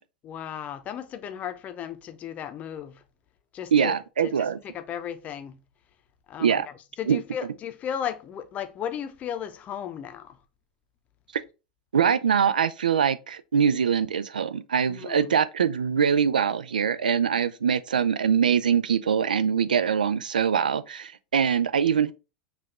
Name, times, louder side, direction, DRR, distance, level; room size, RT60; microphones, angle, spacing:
voice 1, 0.2-3.0 3.5-5.6 6.3-6.6 7.0-10.4 14.9-15.3, left 9 dB, 35° left, 0.6 m, -35 dB
voice 2, 3.7-4.6 6.4-6.7 7.1-7.2 11.3-11.4 11.9-22.1, right 7 dB, 80° right, 0.3 m, -23 dB
5.6 x 2.4 x 3.0 m
hypercardioid pair, 95°, 4 cm